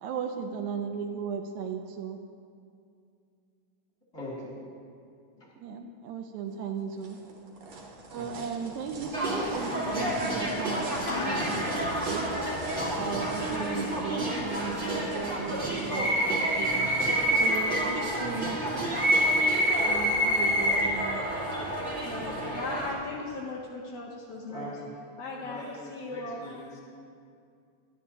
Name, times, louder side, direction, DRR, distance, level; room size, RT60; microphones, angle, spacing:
voice 1, 0.0-2.2 5.6-7.2 8.1-12.3 12.9-16.9 17.3-19.0 19.9-21.2, right 6 dB, 80° right, 5 dB, 1.8 m, -36 dB
voice 2, 4.1-4.6 5.4-5.5 8.1-8.4 24.5-24.9 25.4-26.8, left 1 dB, 10° left, -5 dB, 1.6 m, -42 dB
sound 1, 6.5-17.4, right 3 dB, 60° right, 2.2 m, -44 dB
sound 2, 7.7-7.8 8.1-8.2 9.6-9.7 10.7-19.8, left 2 dB, 60° left, 1.6 m, -44 dB
sound 3, 9.1-22.9, equal, 30° right, 1.6 m, -28 dB
voice 3, 22.0-24.8 25.2-26.6, left 2 dB, 80° left, -1 dB, 1.4 m, -38 dB
12.0 x 11.5 x 2.8 m, 2.4 s
omnidirectional pair, 3.6 m